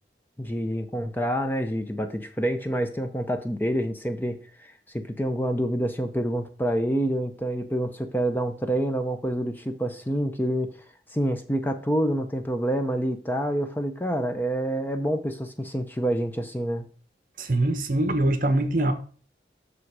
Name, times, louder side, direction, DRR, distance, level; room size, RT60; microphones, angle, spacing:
voice 1, 0.4-10.7 11.1-16.9, right 1 dB, 10° left, 0.6 m, -27 dB
voice 2, 17.4-18.9, right 1 dB, 50° right, 0.9 m, -23 dB
7.6 x 6.2 x 4.7 m
head